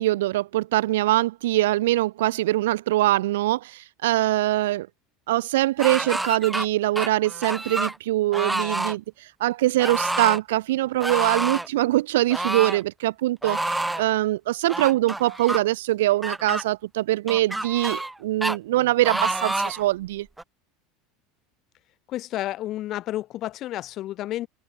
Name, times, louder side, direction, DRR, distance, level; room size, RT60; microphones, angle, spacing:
voice 1, 0.0-4.9 5.3-20.3, right 16 dB, 80° right, 1.0 m, -23 dB
sound 1, 5.8-6.7 7.0-8.0 8.3-9.0 9.8-10.4 11.0-11.7 12.3-12.8 13.4-14.0 14.7-15.6 16.2-16.6 17.3-18.1 18.4-18.6 19.0-19.8 20.4-20.5, right 2 dB, 5° right, 1.6 m, -28 dB
voice 2, 22.1-24.5, left 14 dB, 50° left, 6.5 m, -31 dB
open air
supercardioid pair, 100°, 0 cm